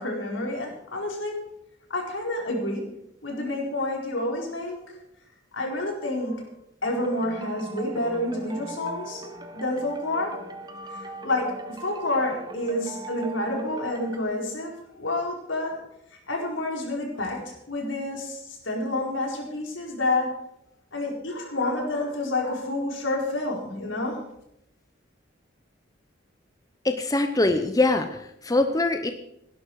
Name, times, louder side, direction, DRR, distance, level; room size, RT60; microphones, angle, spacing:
voice 1, 0.0-1.4 1.9-2.8 3.2-4.8 5.5-6.5 6.8-10.3 11.2-15.7 16.3-20.3 20.9-24.2, left 2 dB, 80° left, 0 dB, 4.5 m, -29 dB
sound 1, 6.9-14.2, right 2 dB, 20° right, 1.3 m, -40 dB
voice 2, 26.8-29.1, left 2 dB, 20° left, 7 dB, 0.8 m, -23 dB
17.5 x 11.5 x 4.8 m, 0.78 s
head